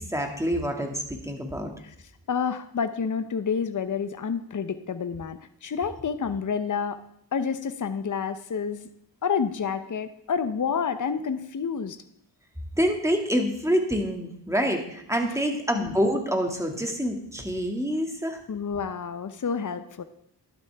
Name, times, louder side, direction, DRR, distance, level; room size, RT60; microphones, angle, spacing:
voice 1, 0.1-1.7 12.8-18.4, equal, 5° right, 2 dB, 2.2 m, -26 dB
voice 2, 2.3-7.0 7.3-8.9 9.2-12.0 15.7-16.0 18.5-20.0, left 6 dB, 45° left, 11 dB, 0.8 m, -29 dB
11.5 x 10.0 x 3.5 m, 0.75 s
cardioid pair, 45°, 43 cm